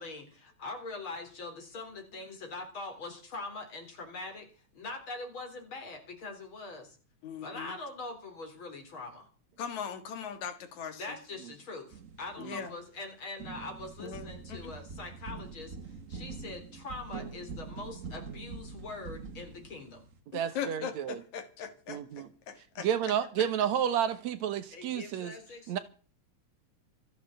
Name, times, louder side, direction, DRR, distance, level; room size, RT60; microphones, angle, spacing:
voice 1, 0.0-7.0 7.4-9.3 11.0-20.1 24.7-25.8, left 3 dB, 45° left, 4.6 m, -43 dB
voice 2, 7.2-7.7 9.6-11.2 12.4-12.7 14.0-14.7 20.3-22.9, left 7 dB, 75° left, 3.0 m, -40 dB
sound 1, 11.9-13.0 13.4-20.2, right 5 dB, 50° right, 0.9 m, -44 dB
voice 3, 20.3-21.2 21.9-22.3 22.8-25.3 25.7-25.8, right 9 dB, 70° right, 2.4 m, -31 dB
14.0 x 9.3 x 7.8 m
omnidirectional pair, 3.3 m